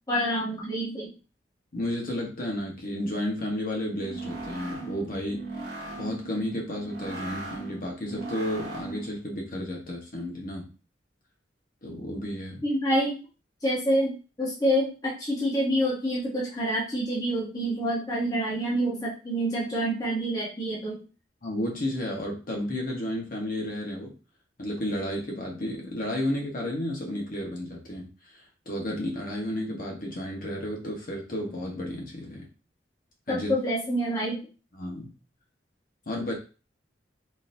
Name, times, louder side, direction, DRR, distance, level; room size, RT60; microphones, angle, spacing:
voice 1, 0.1-1.1 12.6-13.2 13.6-21.0 33.3-34.4, equal, 20° left, -6 dB, 0.8 m, -27 dB
voice 2, 1.7-5.7 6.0-10.7 11.8-12.6 21.4-24.1 24.6-32.5 33.3-33.5 34.7-35.1 36.1-36.3, left 1 dB, 50° left, -1 dB, 1.0 m, -32 dB
sound 1, 3.9-9.2, right 2 dB, 65° right, 1.1 m, -38 dB
3.8 x 2.6 x 2.6 m, 0.34 s
head